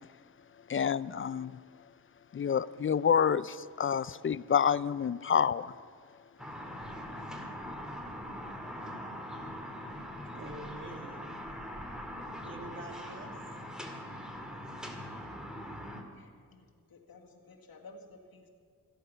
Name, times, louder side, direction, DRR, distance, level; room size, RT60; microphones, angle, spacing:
voice 1, 0.7-1.5 2.3-5.7, left 7 dB, 35° left, 18 dB, 0.4 m, -28 dB
sound 1, 6.4-16.0, equal, ahead, 2.2 m, -42 dB
voice 2, 10.3-11.3 12.4-13.4, right 2 dB, 35° right, 3 dB, 2.1 m, -46 dB
voice 3, 16.2-18.5, left 2 dB, 80° left, 1 dB, 1.9 m, -54 dB
17.5 x 13.5 x 5.7 m, 2.2 s
wide cardioid pair, 90°, 35 cm